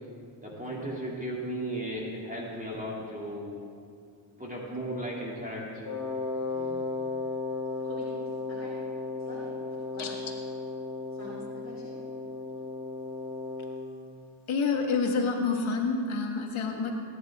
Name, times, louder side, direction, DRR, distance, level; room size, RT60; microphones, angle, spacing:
voice 1, 0.4-3.6 4.4-5.9, right 1 dB, 15° right, -4 dB, 2.5 m, -35 dB
Wind instrument woodwind instrument, 5.8-13.9, left 3 dB, 55° left, 2.6 m, -35 dB
voice 2, 7.8-8.1 8.5-8.7 9.2-9.5 9.9-10.2 11.1-12.0, left 1 dB, 35° left, -6 dB, 2.8 m, -45 dB
voice 3, 14.5-17.0, left 4 dB, 85° left, 2 dB, 1.7 m, -28 dB
18.5 x 10.5 x 3.6 m, 2.3 s
cardioid pair, 55°, 47 cm